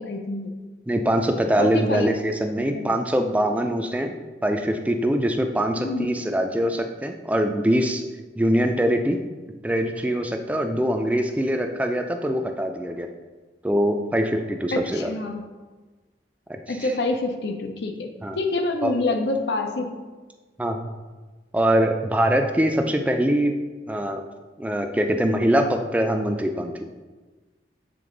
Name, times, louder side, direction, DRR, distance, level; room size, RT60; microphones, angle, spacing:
voice 1, 0.0-0.7 1.6-2.1 2.7-2.9 5.8-6.1 14.7-15.4 16.7-20.0, left 2 dB, 80° left, 5 dB, 0.6 m, -27 dB
voice 2, 0.9-4.1 4.4-8.0 8.4-9.2 9.6-13.1 13.6-15.1 16.5-16.9 18.2-18.4 18.8-18.9 20.6-20.9 21.5-23.5 23.9-24.2 24.6-26.7, equal, 10° right, 4 dB, 0.3 m, -23 dB
6.9 x 3.7 x 3.8 m, 1.3 s
head